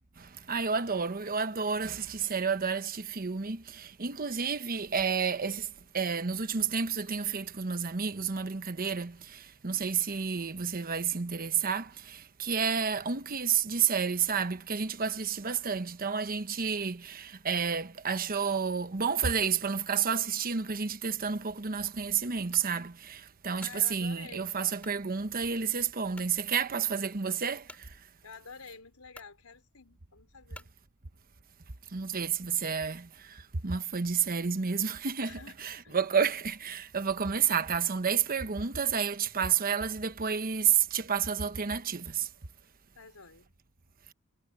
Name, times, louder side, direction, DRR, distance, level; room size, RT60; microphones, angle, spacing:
voice 1, 0.2-5.7 5.9-27.9 31.9-35.3 35.6-42.3, right 6 dB, 45° right, 1.0 m, -30 dB
sound 1, 22.5-22.7 23.3-23.8 24.8-25.0 25.6-25.7 26.1-26.4 27.7-27.9 28.7-28.8 29.1-29.4 30.5-30.8, left 1 dB, 5° left, 6.3 m, -51 dB
voice 2, 23.6-24.6 28.2-30.7 35.2-36.1 42.9-43.6, left 5 dB, 85° left, 4.3 m, -50 dB
head